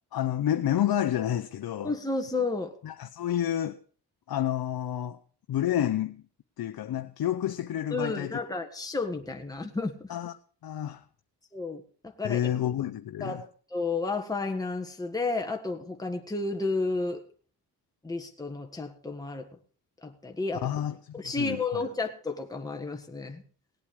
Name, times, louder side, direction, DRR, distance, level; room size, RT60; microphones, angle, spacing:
voice 1, 0.1-1.9 2.8-3.8 4.3-5.2 5.5-6.2 6.6-8.4 10.1-10.3 10.6-11.0 12.2-13.4 20.6-21.8, left 11 dB, 60° left, 0.8 m, -29 dB
voice 2, 1.8-2.7 7.9-10.1 11.5-12.5 13.2-17.2 18.0-19.5 20.0-20.7 21.1-23.4, left 3 dB, 10° left, 1.6 m, -32 dB
18.0 x 8.5 x 5.0 m
cardioid pair, 80°, 40 cm